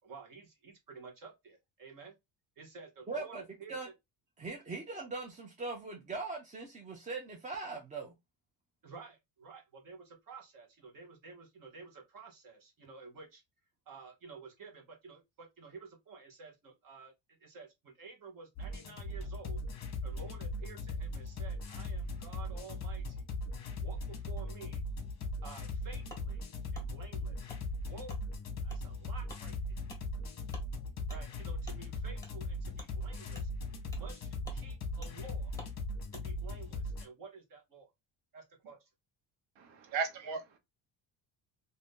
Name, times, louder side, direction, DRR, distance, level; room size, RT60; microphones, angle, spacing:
voice 1, 0.0-2.2 2.6-3.9 8.8-13.4 13.9-19.6 20.0-23.2 23.8-24.8 25.4-26.4 26.7-27.5 27.8-28.2 28.6-29.8 31.1-33.5 33.9-35.5 36.1-37.9 38.3-38.9, right 4 dB, 45° right, 1.0 m, -51 dB
voice 2, 3.1-3.4 3.7-3.9 4.4-8.1, right 3 dB, 20° right, 0.4 m, -40 dB
sound 1, 18.6-37.1, left 1 dB, 35° left, 0.9 m, -39 dB
Wood, 26.1-26.2 26.7-26.9 27.5-27.6 28.1-28.2 28.7-28.8 29.3-29.4 29.9-30.0 30.5-30.7 31.1-31.2 31.6-31.8 32.2-32.3 32.7-32.9 33.3-33.5 33.9-34.1 34.4-34.6 35.0-35.1 35.6-35.7 36.1-36.2, left 2 dB, 5° left, 1.2 m, -50 dB
voice 3, 39.6-40.6, right 5 dB, 85° right, 1.0 m, -36 dB
2.6 x 2.5 x 3.5 m
cardioid pair, 140°, 45 cm